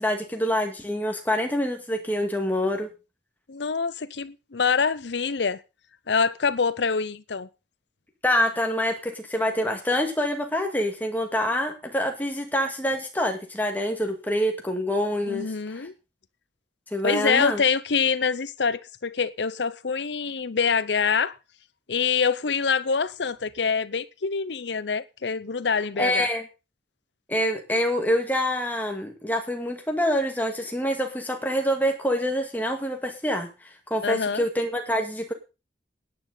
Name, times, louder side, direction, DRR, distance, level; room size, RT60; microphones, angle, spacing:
voice 1, 0.0-2.9 8.2-15.5 16.9-17.6 26.0-26.5 27.3-33.5 33.9-35.3, equal, 10° left, 2.2 m, -26 dB
voice 2, 3.5-5.6 6.1-7.5 15.2-15.9 17.0-21.4 21.9-26.3 34.0-34.4, left 5 dB, 80° left, 0.7 m, -25 dB
15.5 x 9.7 x 4.0 m
head